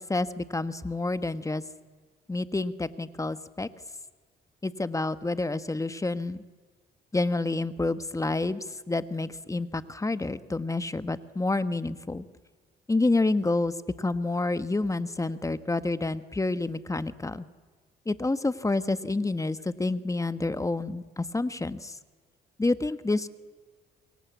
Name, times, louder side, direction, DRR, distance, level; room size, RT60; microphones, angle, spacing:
voice 1, 0.0-1.6 2.3-3.7 4.6-6.4 7.1-12.2 12.9-13.7 14.0-17.4 18.1-21.9 22.6-23.3, left 2 dB, 15° left, 13 dB, 1.2 m, -28 dB
28.5 x 23.0 x 8.3 m, 1.5 s
cardioid pair, 90°, 20 cm